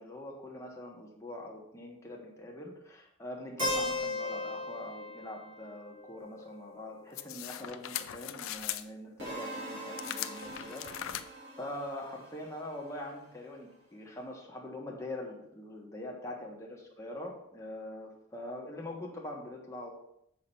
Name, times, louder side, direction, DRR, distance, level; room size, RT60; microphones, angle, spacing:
voice 1, 0.0-11.2 11.6-16.7 17.0-19.9, left 1 dB, 15° left, -1 dB, 1.5 m, -43 dB
Keyboard (musical), 3.6-7.5, left 2 dB, 25° right, 3.2 m, -37 dB
sound 1, 7.1-8.8 10.0-11.2, left 12 dB, 75° left, 0.4 m, -39 dB
sound 2, 9.2-13.3, right 1 dB, 60° right, 3.2 m, -44 dB
7.4 x 5.9 x 4.4 m, 0.75 s
head